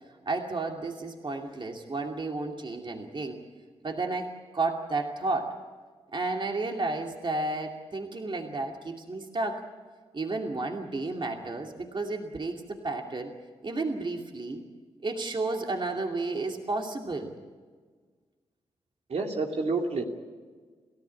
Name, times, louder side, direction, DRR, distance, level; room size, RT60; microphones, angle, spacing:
voice 1, 0.3-3.4 3.8-5.5 6.1-9.6 10.1-13.3 13.6-14.6 15.0-17.3, right 3 dB, 40° right, 3 dB, 2.6 m, -32 dB
voice 2, 19.1-20.0, right 3 dB, 60° right, 2 dB, 2.8 m, -28 dB
30.0 x 14.0 x 8.6 m, 1.5 s
supercardioid pair, 45°, 12 cm